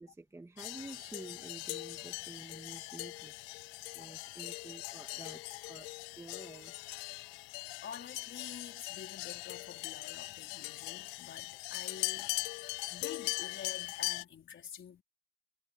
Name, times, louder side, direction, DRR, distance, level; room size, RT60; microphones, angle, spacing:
voice 1, 0.0-3.3 3.9-5.9 6.2-6.7, right 2 dB, 5° right, 2.4 m, -50 dB
sound 1, 0.6-14.2, left 26 dB, 75° left, 0.7 m, -41 dB
voice 2, 7.8-15.0, left 8 dB, 25° left, 4.6 m, -48 dB
cardioid pair, 170°, 44 cm